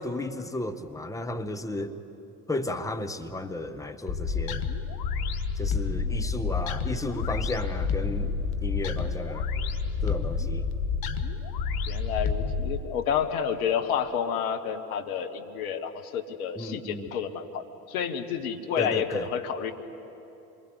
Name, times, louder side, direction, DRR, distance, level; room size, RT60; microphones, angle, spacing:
voice 1, 0.0-2.0 2.5-4.6 5.6-9.5 10.0-10.6 16.6-17.1 18.8-19.3, left 2 dB, 5° left, 7 dB, 1.4 m, -33 dB
sound 1, 4.1-12.8, left 5 dB, 50° left, 1.6 m, -29 dB
voice 2, 11.9-19.7, left 8 dB, 65° left, 6 dB, 1.7 m, -30 dB
27.0 x 23.5 x 8.3 m, 2.9 s
figure-of-eight pair, 65°, 46 cm